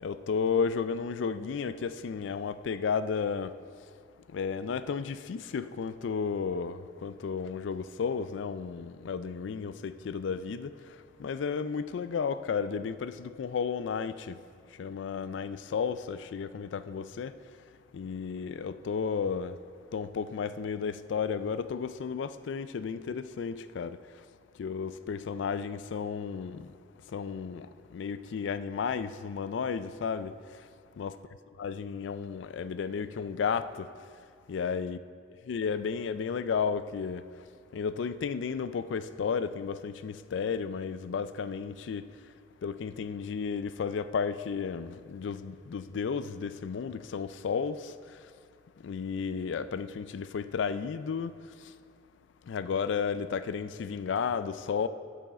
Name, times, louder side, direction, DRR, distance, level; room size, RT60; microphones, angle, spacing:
voice 1, 0.0-3.6 4.3-14.4 14.7-17.4 17.9-19.6 19.9-24.0 24.6-26.7 27.1-30.7 31.0-31.1 31.6-33.9 34.5-35.0 35.5-37.3 37.7-42.1 42.6-48.2 48.8-51.7 52.4-54.9, left 6 dB, 80° left, 0.3 m, -33 dB
9.8 x 7.8 x 4.2 m
head